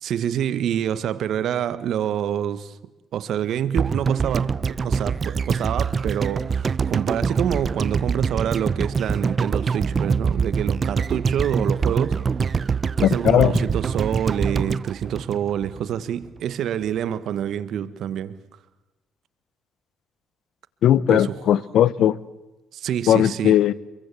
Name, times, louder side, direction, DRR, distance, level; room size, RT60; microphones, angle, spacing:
voice 1, 0.0-2.7 3.1-12.2 13.0-18.4 21.1-21.4 22.7-23.6, right 9 dB, 75° right, 1.6 m, -27 dB
sound 1, 3.8-16.0 16.2-16.3, right 5 dB, 40° right, 0.8 m, -24 dB
voice 2, 13.0-13.6 20.8-22.2 23.1-23.7, left 11 dB, 75° left, 1.0 m, -18 dB
28.0 x 23.0 x 8.5 m
cardioid pair, 90°, 0 cm